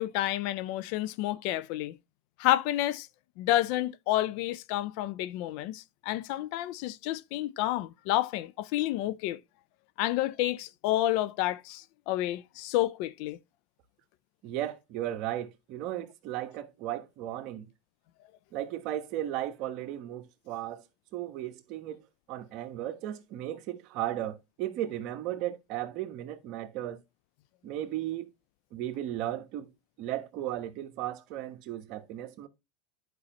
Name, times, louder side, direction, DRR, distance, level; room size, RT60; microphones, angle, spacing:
voice 1, 0.0-1.9 2.4-3.1 3.4-9.4 10.0-13.4, left 15 dB, 60° left, 0.5 m, -30 dB
voice 2, 14.4-17.7 18.5-20.8 21.1-22.0 22.3-27.0 27.6-28.3 28.7-29.7 30.0-32.5, right 12 dB, 55° right, 1.1 m, -35 dB
9.7 x 5.5 x 3.0 m
supercardioid pair, 120°, 0 cm